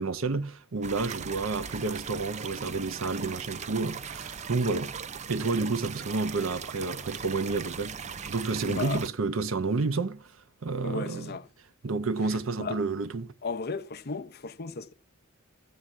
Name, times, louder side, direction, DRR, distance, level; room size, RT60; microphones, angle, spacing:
voice 1, 0.0-4.9 5.3-10.4 10.6-11.3 11.8-13.3, right 3 dB, 70° right, 0.7 m, -30 dB
sound 1, 0.8-9.1, right 6 dB, 35° right, 0.5 m, -39 dB
voice 2, 8.7-9.0 10.8-11.5 12.6-12.8 13.4-14.9, left 4 dB, 50° left, 0.8 m, -35 dB
13.0 x 7.9 x 7.2 m
head